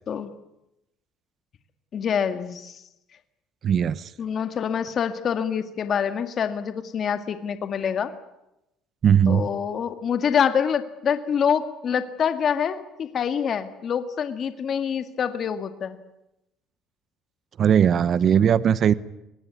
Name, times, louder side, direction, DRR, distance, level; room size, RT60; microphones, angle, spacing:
voice 1, 1.9-2.8 4.2-8.1 9.3-16.0, left 7 dB, 45° left, 8 dB, 2.0 m, -26 dB
voice 2, 3.6-4.1 9.0-9.5 17.6-18.9, right 8 dB, 45° right, 16 dB, 0.9 m, -19 dB
24.0 x 19.0 x 9.7 m, 0.90 s
cardioid pair, 110°, 0 cm